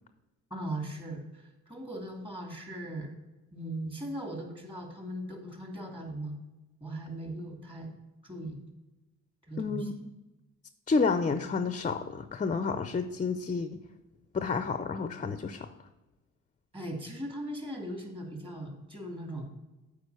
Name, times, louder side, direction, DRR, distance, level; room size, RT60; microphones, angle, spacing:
voice 1, 0.5-3.1 3.5-6.4 6.8-7.9 8.2-8.6 9.5-9.9 16.7-19.5, right 1 dB, 15° right, 2 dB, 2.5 m, -39 dB
voice 2, 10.9-13.8 14.3-15.7, left 4 dB, 25° left, 10 dB, 0.6 m, -30 dB
7.9 x 4.9 x 7.0 m, 1.1 s
cardioid pair, 90°, 30 cm